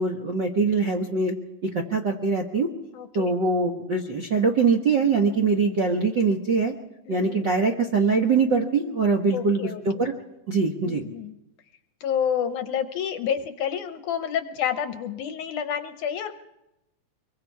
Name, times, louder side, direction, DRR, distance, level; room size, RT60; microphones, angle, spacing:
voice 1, 0.0-1.3 1.7-2.7 3.1-6.7 7.1-10.1 10.5-11.0, right 4 dB, 60° right, 0 dB, 1.2 m, -23 dB
voice 2, 2.9-3.3 7.1-7.5 9.3-10.1 10.9-11.4 12.0-16.3, left 8 dB, 70° left, 9 dB, 2.0 m, -29 dB
24.0 x 23.0 x 4.7 m, 0.91 s
omnidirectional pair, 4.1 m